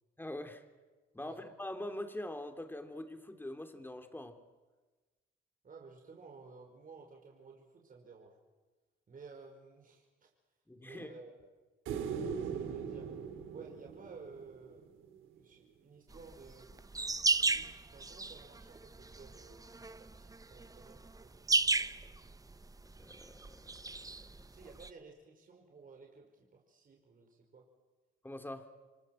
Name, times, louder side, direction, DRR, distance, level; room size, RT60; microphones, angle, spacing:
voice 1, 0.2-0.6 1.1-4.4 10.7-11.2 23.0-24.3 28.2-28.7, left 1 dB, 10° left, 6 dB, 3.4 m, -44 dB
voice 2, 5.6-8.4 9.1-10.3 10.8-11.5 12.4-13.2 13.5-14.9 15.3-16.8 17.3-21.5 24.3-27.7, right 4 dB, 45° right, 1 dB, 5.5 m, -55 dB
sound 1, 11.9-15.1 17.7-17.8, right 7 dB, 90° right, 3.0 m, -40 dB
sound 2, 16.1-24.9, right 3 dB, 15° right, 1.0 m, -35 dB
29.0 x 25.0 x 7.9 m, 1.3 s
cardioid pair, 90°, 20 cm